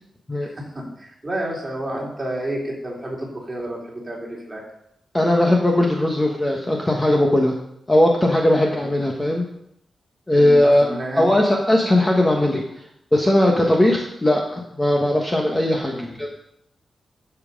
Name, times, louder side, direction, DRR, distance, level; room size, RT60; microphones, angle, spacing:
voice 1, 0.4-4.6 8.8-8.9 10.3-11.4 15.9-16.1, right 1 dB, 20° right, -3 dB, 3.3 m, -30 dB
voice 2, 5.1-7.5 7.9-9.5 10.3-10.9 11.2-12.6 13.1-16.3, left 1 dB, 15° left, 0 dB, 1.2 m, -18 dB
10.5 x 7.2 x 5.3 m, 0.74 s
wide cardioid pair, 135°, 0 cm